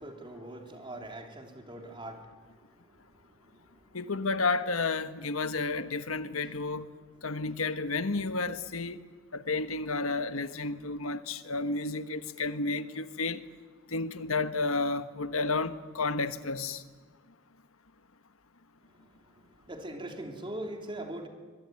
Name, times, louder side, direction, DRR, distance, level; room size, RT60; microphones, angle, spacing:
voice 1, 0.0-4.0 18.9-21.3, right 1 dB, 25° right, 3.4 m, -43 dB
voice 2, 3.9-6.9 7.2-9.0 9.3-13.4 13.9-16.8, left 3 dB, 80° left, 1.3 m, -31 dB
24.0 x 22.0 x 9.6 m
head